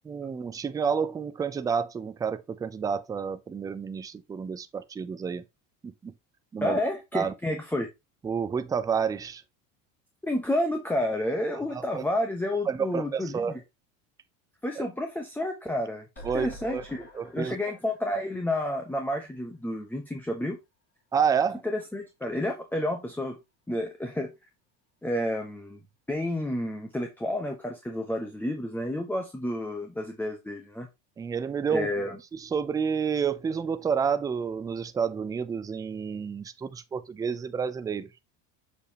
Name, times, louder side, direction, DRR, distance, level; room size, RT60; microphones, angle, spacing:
voice 1, 0.1-5.4 5.8-6.1 6.5-6.8 7.1-7.3 8.2-9.4 11.7-12.0 12.7-13.5 14.8-14.9 16.2-16.8 17.2-17.6 21.1-21.6 31.2-31.9 32.3-38.1, right 6 dB, 10° right, 0.3 m, -29 dB
voice 2, 6.6-7.9 10.2-13.6 14.6-16.1 16.3-17.1 17.3-20.6 21.6-23.4 23.7-24.3 25.0-25.8 26.1-30.9 31.7-32.2, left 1 dB, 5° left, 0.8 m, -30 dB
sound 1, 16.2-19.4 19.8-19.9 20.1-20.2, right 1 dB, 25° left, 2.9 m, -47 dB
6.8 x 5.0 x 2.8 m
supercardioid pair, 120°, 38 cm